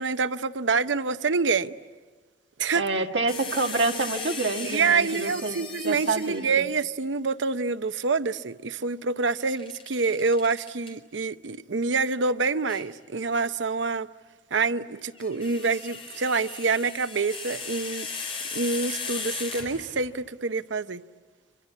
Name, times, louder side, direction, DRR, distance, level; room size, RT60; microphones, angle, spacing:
voice 1, 0.0-1.7 2.6-2.8 4.6-14.1 14.5-18.1 18.5-21.0, right 4 dB, 85° right, 0.7 m, -26 dB
voice 2, 2.7-6.6, right 3 dB, 70° right, 1.7 m, -28 dB
sound 1, 3.3-6.6 9.5-10.9 12.7-12.9 15.0-20.1, left 4 dB, 30° left, 4.5 m, -37 dB
26.5 x 24.5 x 8.3 m
head